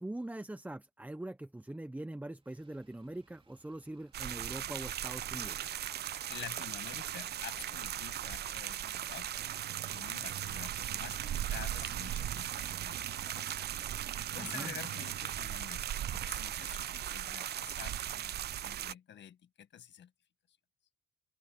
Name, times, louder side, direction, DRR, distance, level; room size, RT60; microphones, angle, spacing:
voice 1, 0.0-5.8 14.4-14.7, right 1 dB, 10° right, 0.9 m, -43 dB
Motor vehicle (road), 2.4-17.0, right 3 dB, 25° right, 3.5 m, -65 dB
water stream, 4.1-18.9, right 11 dB, 55° right, 0.6 m, -38 dB
voice 2, 6.3-9.3 9.9-13.6 14.3-15.9 16.1-20.1 20.5-20.6, left 10 dB, 65° left, 1.8 m, -49 dB
sound 1, 9.4-16.2, right 13 dB, 75° right, 0.9 m, -49 dB
open air
cardioid pair, 90°, 20 cm